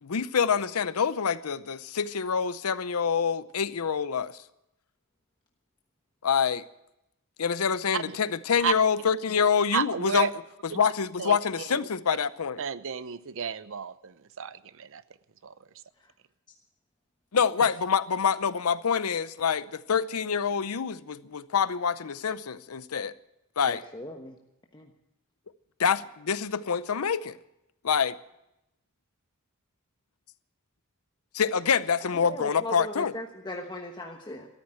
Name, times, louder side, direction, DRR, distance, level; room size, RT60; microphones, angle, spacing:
voice 1, 0.0-4.4 6.2-6.6 7.4-10.3 10.7-12.6 17.3-23.1 23.6-23.8 25.8-27.4 27.8-28.2 31.3-33.1, left 6 dB, 85° left, 0.7 m, -26 dB
voice 2, 9.7-10.3 10.7-10.8 11.2-11.4 11.7-11.8 12.6-15.0 15.4-15.5, right 7 dB, 65° right, 0.7 m, -31 dB
voice 3, 23.7-24.4 24.7-24.9 32.1-34.5, left 2 dB, 20° left, 1.2 m, -38 dB
14.0 x 13.5 x 7.7 m
head